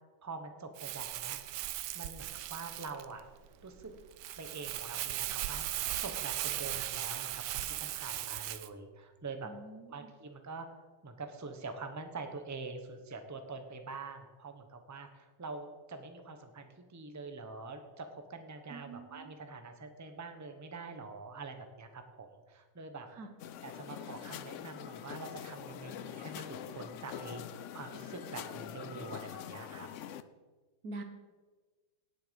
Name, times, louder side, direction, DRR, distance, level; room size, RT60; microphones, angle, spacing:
voice 1, 0.2-1.4 1.9-3.3 3.6-3.9 4.4-5.6 6.0-9.5 9.9-23.1 23.6-29.9, right 3 dB, 15° right, 6 dB, 0.8 m, -45 dB
Crumpling crinkling, 0.8-8.7, right 14 dB, 85° right, 1.2 m, -38 dB
voice 2, 9.4-10.1 18.7-19.4 23.2-23.3 30.8-31.0, right 2 dB, 60° right, 6 dB, 1.7 m, -45 dB
sound 1, 23.4-30.2, left 10 dB, 70° left, 0.7 m, -44 dB
18.0 x 6.8 x 5.2 m, 1.3 s
omnidirectional pair, 1.8 m